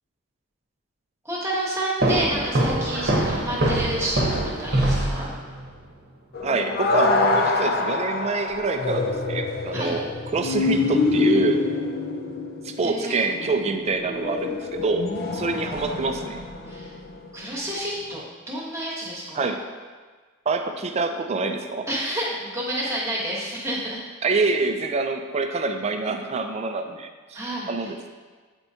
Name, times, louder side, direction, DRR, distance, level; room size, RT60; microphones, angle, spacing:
voice 1, 1.2-5.3 9.7-10.0 12.8-13.2 16.7-16.9 17.3-19.5 21.9-24.0 24.3-24.4 27.3-27.9, right 1 dB, 15° right, -4 dB, 1.1 m, -30 dB
sound 1, 2.0-5.7, right 1 dB, 45° right, 0.9 m, -23 dB
sound 2, 6.3-17.4 18.1-18.2, left 3 dB, 45° left, 0.4 m, -26 dB
voice 2, 6.4-10.1 10.3-11.6 12.6-16.4 19.3-19.6 20.5-21.9 24.2-27.4 27.7-28.1, right 3 dB, 30° right, 6 dB, 0.3 m, -26 dB
8.3 x 4.4 x 2.7 m, 1.4 s
head